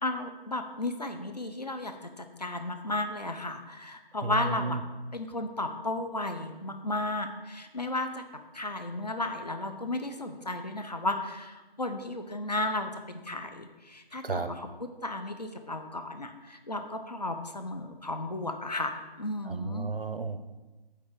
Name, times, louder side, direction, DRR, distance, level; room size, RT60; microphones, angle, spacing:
voice 1, 0.0-4.8 5.1-8.2 8.5-19.9, left 2 dB, 45° left, 6 dB, 0.7 m, -34 dB
voice 2, 4.2-4.8 14.2-14.5 19.5-20.4, right 3 dB, 70° right, 10 dB, 0.7 m, -32 dB
8.5 x 3.2 x 6.5 m, 1.2 s
figure-of-eight pair, 165°, 30 cm